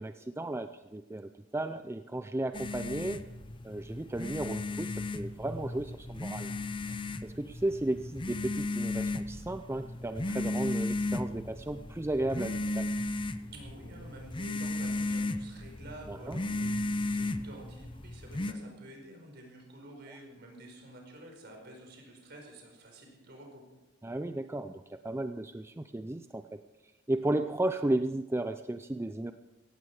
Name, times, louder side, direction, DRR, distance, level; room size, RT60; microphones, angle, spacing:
voice 1, 0.0-3.2 3.6-6.5 6.8-12.9 16.1-16.4 24.0-26.6 27.1-29.3, right 1 dB, 15° right, 9 dB, 0.4 m, -34 dB
sound 1, 2.5-18.5, left 2 dB, 25° left, 0.7 m, -35 dB
voice 2, 13.5-23.6, right 1 dB, 55° right, 1 dB, 5.1 m, -50 dB
17.5 x 15.5 x 4.8 m, 1.0 s
head